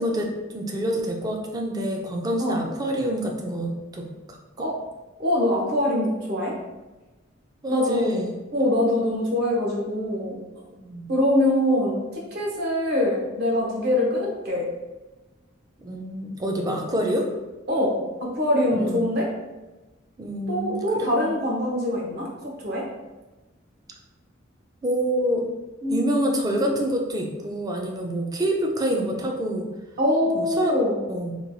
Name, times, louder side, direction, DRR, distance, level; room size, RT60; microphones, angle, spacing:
voice 1, 0.0-4.7 7.6-8.3 10.7-11.1 15.8-17.3 18.7-19.1 20.2-21.3 24.8-25.4 25.9-29.7 30.3-30.7 31.1-31.3, right 1 dB, 20° right, 1 dB, 0.3 m, -27 dB
voice 2, 5.2-6.5 7.7-8.1 8.5-10.4 11.1-14.7 17.7-19.3 20.5-22.3 22.6-22.9 25.8-26.4 30.0-31.0, left 1 dB, 55° right, -2 dB, 0.7 m, -23 dB
2.9 x 2.2 x 2.6 m, 1.2 s
head